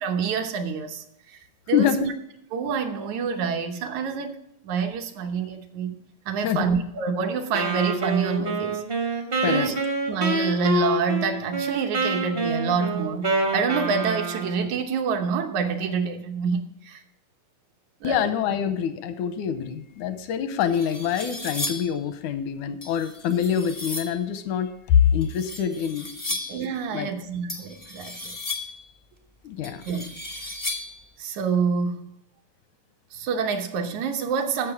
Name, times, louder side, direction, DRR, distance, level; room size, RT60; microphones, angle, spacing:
voice 1, 0.0-1.0 1.7-2.1 2.5-4.4 4.6-6.0 6.3-9.2 9.5-9.8 10.1-17.0 18.0-18.3 26.5-28.4 29.9-30.1 31.2-32.1 33.1-34.7, right 5 dB, 75° right, 2.2 m, -27 dB
voice 2, 1.7-2.1 6.4-6.7 9.4-9.7 18.0-26.4 26.9-27.1 29.4-29.8, left 8 dB, 85° left, 2.3 m, -25 dB
Wind instrument woodwind instrument, 7.5-14.7, right 2 dB, 45° right, 0.7 m, -27 dB
sound 1, 20.1-20.2 20.6-22.0 22.8-24.2 25.2-26.7 27.5-28.9 29.6-31.0, left 2 dB, 45° left, 0.3 m, -35 dB
14.0 x 6.1 x 4.8 m
omnidirectional pair, 3.4 m